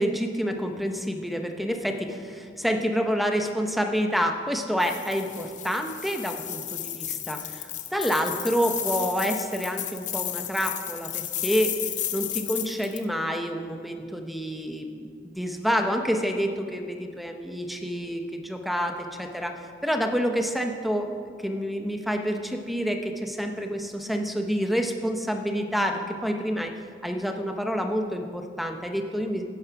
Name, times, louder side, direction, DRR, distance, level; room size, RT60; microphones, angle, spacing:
voice 1, 0.0-11.7 12.1-19.5 19.8-21.1 21.4-26.7 27.0-29.5, equal, ahead, 5 dB, 0.7 m, -28 dB
sound 1, 4.8-13.0, left 11 dB, 45° left, 0.6 m, -33 dB
9.6 x 9.2 x 5.8 m, 2.2 s
head